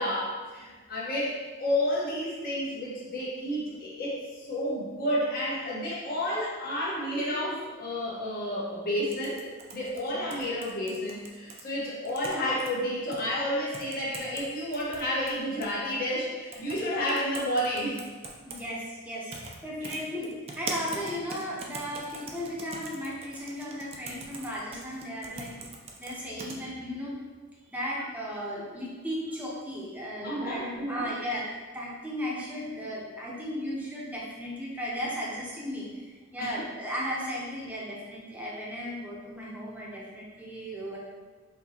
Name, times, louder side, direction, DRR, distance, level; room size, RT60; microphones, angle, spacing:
voice 1, 0.0-9.4 9.7-18.0 19.8-20.0 30.2-31.1 36.4-36.6, equal, 45° left, -6 dB, 1.2 m, -31 dB
sound 1, 9.1-11.6 12.0-12.7 13.1-13.2 13.7-14.4 14.7-15.7 16.5-16.8 17.1-18.6 19.3-19.6 19.8-26.6, right 3 dB, 30° right, 0.4 m, -41 dB
voice 2, 10.1-10.4 18.5-25.5 26.0-27.2 27.7-31.5 31.7-41.0, equal, 5° right, -5 dB, 0.8 m, -36 dB
5.7 x 2.9 x 2.9 m, 1.4 s
head